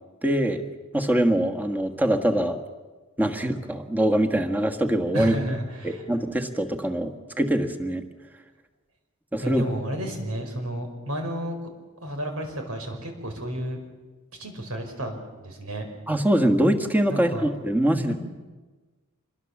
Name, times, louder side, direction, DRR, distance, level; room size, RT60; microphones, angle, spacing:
voice 1, 0.2-0.6 0.9-2.6 3.2-5.3 5.8-8.0 9.3-9.6 16.1-18.1, right 1 dB, 10° right, 4 dB, 1.6 m, -23 dB
voice 2, 5.1-6.1 9.4-11.6 12.0-13.8 14.4-15.9 17.1-17.5 17.9-18.1, equal, 85° right, 4 dB, 5.0 m, -31 dB
26.0 x 21.5 x 7.3 m, 1.3 s
head